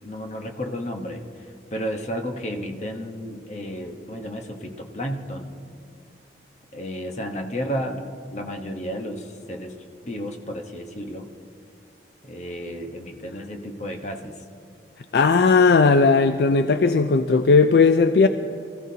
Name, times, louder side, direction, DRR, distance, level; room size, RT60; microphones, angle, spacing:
voice 1, 0.0-5.6 6.7-11.3 12.2-14.4, equal, 40° left, 3 dB, 1.1 m, -32 dB
voice 2, 15.1-18.3, left 4 dB, 65° left, 9 dB, 0.4 m, -17 dB
23.5 x 15.0 x 2.8 m, 2.4 s
head